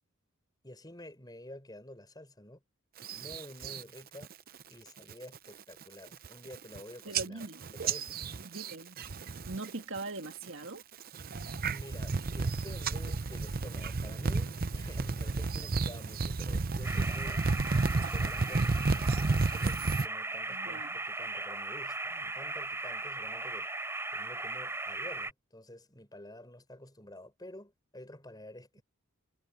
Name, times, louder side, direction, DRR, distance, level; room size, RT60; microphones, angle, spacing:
voice 1, 0.6-2.6 3.1-4.3 4.7-7.5 7.8-8.2 11.7-17.4 17.9-23.7 24.1-28.8, left 1 dB, 20° left, 5.7 m, -50 dB
sound 1, 3.0-3.8 4.2-4.6 5.0-5.4 5.8-5.9 6.1-6.8 7.1-9.7 10.0-10.5 11.0-20.1, right 3 dB, 45° right, 0.7 m, -32 dB
voice 2, 7.0-7.6 8.5-9.0 9.5-10.8 20.5-21.0, right 2 dB, 60° right, 2.2 m, -41 dB
sound 2, 16.8-25.3, right 2 dB, 10° right, 5.4 m, -37 dB
head